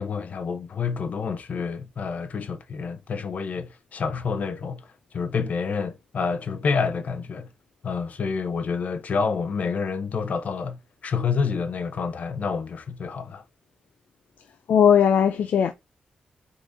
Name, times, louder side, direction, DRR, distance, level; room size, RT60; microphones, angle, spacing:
voice 1, 0.0-4.9 5.1-7.5 7.8-13.4, left 5 dB, 65° left, 0.8 m, -28 dB
voice 2, 14.7-15.7, left 8 dB, 85° left, 0.4 m, -18 dB
4.7 x 3.9 x 2.7 m
cardioid pair, 65°, 3 cm